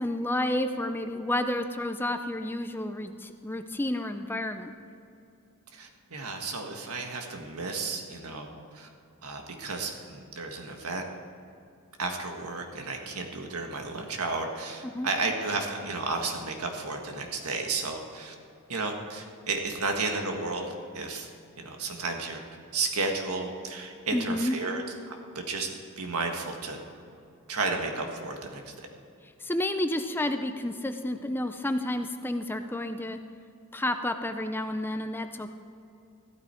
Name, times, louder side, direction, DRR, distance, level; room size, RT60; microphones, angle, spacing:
voice 1, 0.0-4.7 14.8-15.1 24.1-24.6 29.4-33.2 33.7-35.5, left 1 dB, 10° left, 8 dB, 0.5 m, -30 dB
voice 2, 5.7-8.9 9.2-11.0 12.0-18.3 18.7-21.3 21.6-22.4 22.7-25.7 26.0-26.8 27.5-28.9, right 3 dB, 85° right, 3 dB, 1.6 m, -33 dB
14.5 x 12.5 x 4.4 m, 2.6 s
head